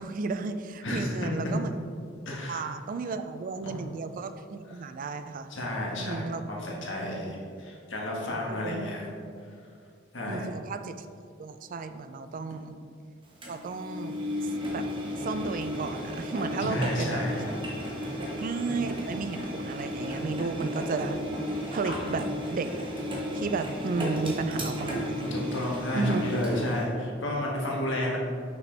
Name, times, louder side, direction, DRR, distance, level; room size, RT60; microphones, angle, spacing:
voice 1, 0.0-1.7 2.5-5.5 6.0-6.4 8.5-8.8 10.3-11.1 11.4-12.7 13.5-14.8 15.1-17.2 18.2-21.2 21.7-22.7 23.3-25.4 25.9-26.2, right 4 dB, 45° right, 10 dB, 0.4 m, -33 dB
voice 2, 2.2-2.7 5.5-9.1 10.1-10.5 16.6-17.5 21.8-22.1 25.3-28.2, left 1 dB, 65° left, -3 dB, 1.5 m, -31 dB
Engine, 13.4-26.8, equal, 25° right, 1.1 m, -34 dB
6.3 x 5.9 x 3.3 m, 2.3 s
head